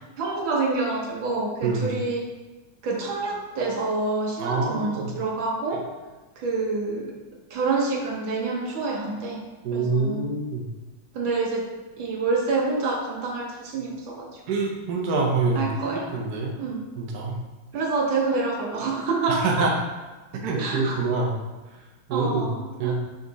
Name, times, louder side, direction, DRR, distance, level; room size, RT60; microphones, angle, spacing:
voice 1, 0.2-2.3 2.8-5.9 6.4-7.1 7.5-10.2 11.1-14.4 15.6-16.2 16.6-16.9 17.7-19.7 20.6-21.0 22.1-22.9, right 3 dB, 75° right, -1 dB, 1.8 m, -27 dB
voice 2, 1.6-1.9 4.4-5.1 9.6-10.6 14.5-16.6 17.0-17.4 19.3-19.7 20.4-21.3 22.1-22.5 22.8-22.9, right 3 dB, 60° right, -1 dB, 1.2 m, -26 dB
5.1 x 5.0 x 4.0 m, 1.2 s
omnidirectional pair, 2.2 m